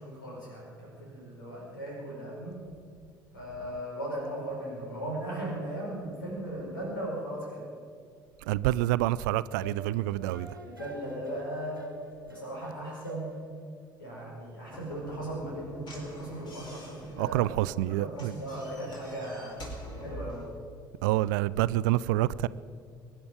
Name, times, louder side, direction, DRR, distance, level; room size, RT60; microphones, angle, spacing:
voice 1, 0.0-2.7 3.3-7.7 10.6-11.9 12.2-13.4 14.0-17.4 17.9-19.6 20.0-20.5, right 1 dB, 75° left, 5.1 m, -37 dB
voice 2, 8.5-10.5 17.2-18.3 21.0-22.5, right 16 dB, 65° right, 0.4 m, -27 dB
sound 1, 9.1-13.7, right 2 dB, 90° right, 1.4 m, -45 dB
Slam / Knock, 14.7-20.5, equal, 40° left, 3.9 m, -45 dB
23.5 x 10.5 x 5.1 m
figure-of-eight pair, 55°, 11 cm